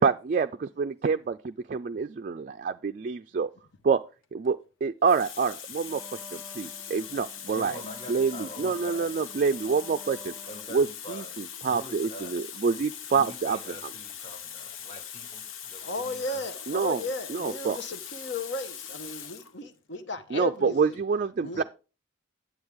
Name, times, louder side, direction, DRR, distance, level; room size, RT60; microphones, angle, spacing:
voice 1, 0.0-3.5 3.8-4.0 4.3-6.0 6.3-7.7 8.1-10.3 10.7-10.9 11.6-13.6 16.7-17.0 17.3-17.8 20.3-21.6, right 5 dB, 45° right, 0.3 m, -27 dB
Water tap faucet, 4.2-4.5 5.0-19.5 20.4-20.6, left 8 dB, 90° left, 0.8 m, -41 dB
Wind instrument woodwind instrument, 5.8-11.0, left 1 dB, 5° right, 1.3 m, -50 dB
voice 2, 7.5-9.8 10.4-12.6 13.1-16.6 21.5-21.6, equal, 30° left, 1.6 m, -45 dB
voice 3, 15.8-21.0 21.4-21.6, left 2 dB, 60° left, 1.0 m, -35 dB
9.5 x 7.9 x 3.5 m
head